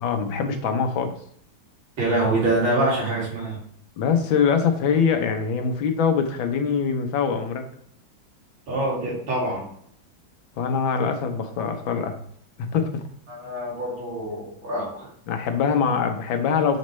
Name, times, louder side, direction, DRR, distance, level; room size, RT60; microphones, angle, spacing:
voice 1, 0.0-1.1 4.0-7.6 10.6-12.2 12.6-13.0 15.3-16.8, left 6 dB, 80° left, 6 dB, 1.6 m, -23 dB
voice 2, 2.0-3.6 8.7-9.7 13.3-15.1, right 2 dB, 85° right, -5 dB, 3.3 m, -25 dB
6.3 x 5.2 x 3.1 m, 0.64 s
omnidirectional pair, 2.1 m